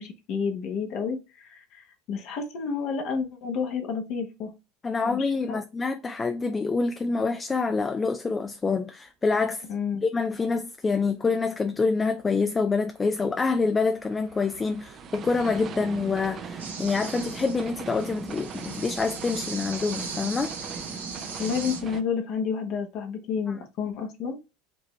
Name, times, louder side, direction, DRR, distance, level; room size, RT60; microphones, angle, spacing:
voice 1, 0.0-4.5 5.0-5.6 9.7-10.1 21.4-24.4, left 6 dB, 55° left, 1.1 m, -30 dB
voice 2, 4.8-9.6 10.0-20.5, left 4 dB, 20° left, 0.4 m, -26 dB
sound 1, 12.7-22.0, right 6 dB, 40° right, 0.6 m, -39 dB
sound 2, 16.6-21.8, right 5 dB, 80° right, 0.9 m, -39 dB
5.2 x 2.9 x 3.2 m
hypercardioid pair, 75°, 0 cm